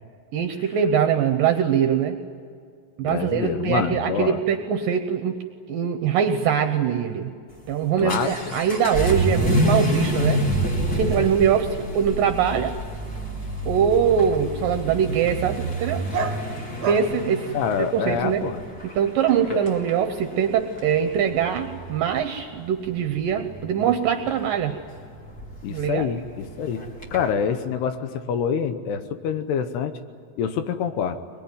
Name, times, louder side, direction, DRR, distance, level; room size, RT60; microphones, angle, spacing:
voice 1, 0.3-2.2 3.0-5.4 5.7-7.3 7.7-10.4 10.9-12.8 13.7-16.0 16.9-17.5 17.9-18.4 19.0-24.8 25.7-26.1, right 8 dB, 75° right, 7 dB, 2.1 m, -22 dB
voice 2, 3.0-4.4 8.0-8.6 17.5-18.6 19.5-19.6 25.6-29.9 30.4-31.2, left 7 dB, 75° left, 9 dB, 2.9 m, -26 dB
Vehicle / Accelerating revving vroom, 7.5-27.3, right 1 dB, 25° left, 3.1 m, -29 dB
Dog, 13.0-18.3, right 5 dB, 45° right, 1.2 m, -36 dB
23.0 x 21.5 x 9.5 m, 2.2 s
omnidirectional pair, 4.9 m